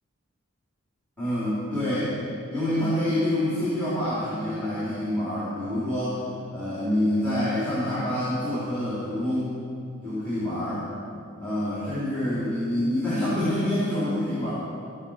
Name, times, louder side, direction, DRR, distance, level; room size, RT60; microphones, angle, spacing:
voice 1, 1.2-2.2 2.5-6.2 6.5-9.6 10.0-10.9 11.4-14.5, left 1 dB, 5° left, -11 dB, 3.8 m, -27 dB
14.5 x 6.5 x 7.3 m, 2.5 s
head